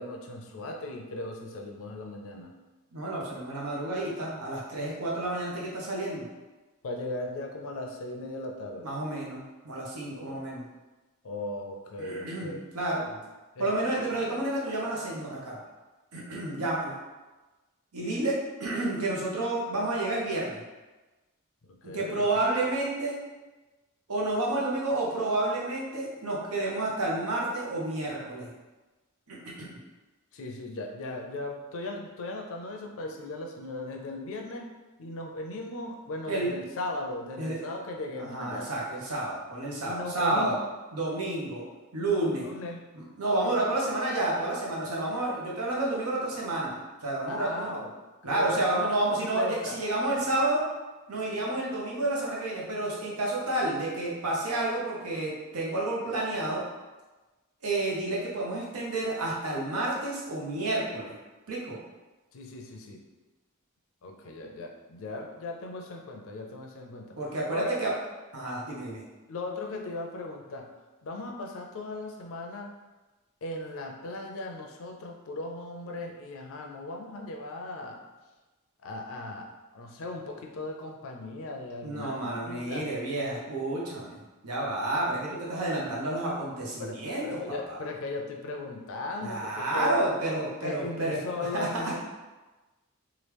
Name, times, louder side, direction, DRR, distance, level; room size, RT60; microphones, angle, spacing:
voice 1, 0.0-2.5 6.8-8.9 10.1-10.5 11.2-12.6 13.1-13.2 13.6-13.7 16.3-16.4 21.7-22.4 30.3-34.7 35.0-38.7 39.8-40.7 42.3-42.8 47.3-47.9 48.2-48.6 48.9-49.8 62.3-63.0 64.0-67.2 67.5-67.8 69.3-70.7 71.0-72.7 73.4-78.0 78.8-82.9 86.8-89.9 90.5-92.0, left 2 dB, 65° left, 1 dB, 0.5 m, -37 dB
voice 2, 2.9-6.3 8.8-10.6 12.0-13.0 13.6-15.6 16.1-17.0 17.9-18.3 18.6-20.6 21.8-23.2 24.1-28.5 29.3-29.8 36.3-36.5 37.4-37.6 38.2-40.6 40.9-41.6 41.9-42.5 42.9-47.8 48.2-50.6 51.1-56.6 57.6-61.1 61.5-61.8 67.2-67.9 68.3-69.0 81.8-84.2 84.4-87.8 89.2-91.9, right 2 dB, 85° right, -4 dB, 0.9 m, -30 dB
3.0 x 2.4 x 3.3 m, 1.2 s
head